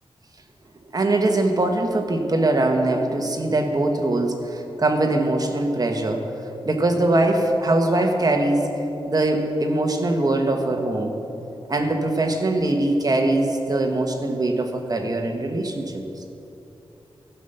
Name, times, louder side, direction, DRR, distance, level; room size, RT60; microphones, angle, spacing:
voice 1, 0.9-6.3 6.6-8.8 9.1-11.2 11.7-16.0, right 2 dB, 40° right, 4 dB, 1.2 m, -22 dB
15.0 x 5.7 x 6.7 m, 2.9 s
wide cardioid pair, 95°, 10 cm